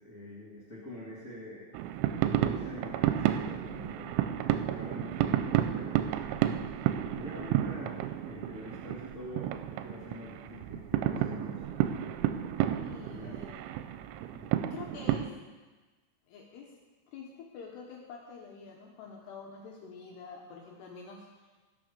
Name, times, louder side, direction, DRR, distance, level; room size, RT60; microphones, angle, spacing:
voice 1, 0.0-1.7 2.4-4.1 4.6-6.4 7.1-11.6 13.1-13.3 14.3-14.5, left 1 dB, 30° left, -10 dB, 1.3 m, -45 dB
sound 1, 1.7-15.3, right 12 dB, 85° right, 3.1 m, -31 dB
voice 2, 12.7-13.6 14.7-15.2 16.3-16.7 17.1-21.5, left 5 dB, 70° left, -1 dB, 2.8 m, -47 dB
19.0 x 6.4 x 5.2 m, 1.3 s
omnidirectional pair, 5.5 m